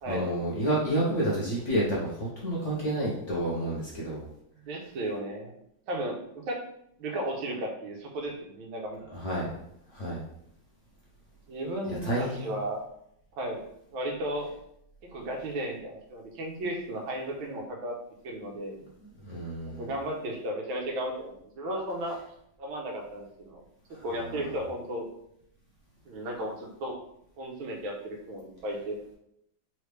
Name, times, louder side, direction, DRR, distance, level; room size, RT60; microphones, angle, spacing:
voice 1, 0.1-4.2 9.1-9.5 9.9-10.2 11.9-12.6 19.2-19.8, right 1 dB, 55° left, -5 dB, 0.9 m, -29 dB
voice 2, 4.6-5.5 5.9-6.6 7.0-9.2 11.5-12.9 13.4-13.6 13.9-14.5 15.0-17.9 18.2-18.8 19.7-22.2 22.6-23.6 24.0-25.1 26.1-27.0 27.4-29.0, right 1 dB, 90° right, 1 dB, 1.6 m, -34 dB
3.9 x 3.3 x 3.2 m, 0.74 s
omnidirectional pair, 2.2 m